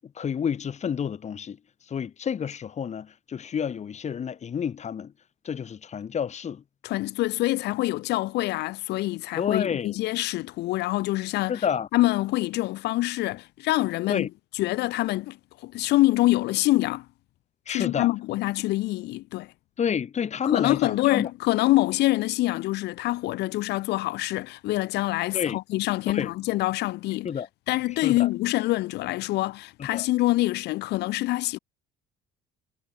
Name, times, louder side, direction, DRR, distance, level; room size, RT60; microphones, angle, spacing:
voice 1, 0.2-1.6 1.9-5.1 5.4-6.6 9.4-9.9 11.5-11.9 14.1-14.3 17.7-18.1 19.8-21.3 25.3-25.6 26.1-26.3 27.2-27.5 28.0-28.3 29.8-30.1, left 7 dB, 40° left, 5.0 m, -29 dB
voice 2, 6.8-11.6 11.9-14.3 14.5-17.0 17.7-19.5 20.4-27.3 27.7-31.6, left 18 dB, 80° left, 1.4 m, -25 dB
cardioid pair, 110°, 17 cm